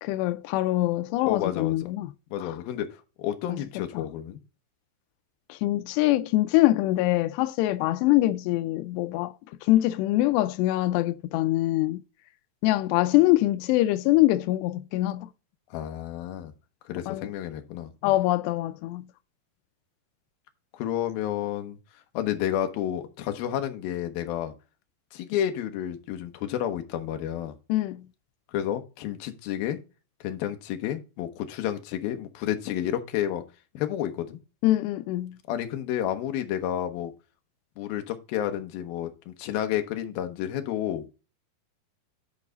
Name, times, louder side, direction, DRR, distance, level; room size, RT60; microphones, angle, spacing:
voice 1, 0.0-2.1 2.4-2.6 3.5-3.6 4.0-4.1 5.5-9.3 9.6-12.0 12.6-15.3 17.1-17.3 18.0-19.0 27.7-28.0 34.6-35.4, left 16 dB, 90° left, 2.7 m, -24 dB
voice 2, 1.3-1.8 2.3-2.9 3.2-4.4 15.7-16.5 16.9-18.2 20.7-21.8 22.1-24.5 25.1-27.5 28.5-29.8 30.2-33.4 33.7-34.4 35.5-37.1 37.8-41.1, left 11 dB, 70° left, 2.8 m, -30 dB
11.0 x 4.8 x 3.9 m
omnidirectional pair, 4.8 m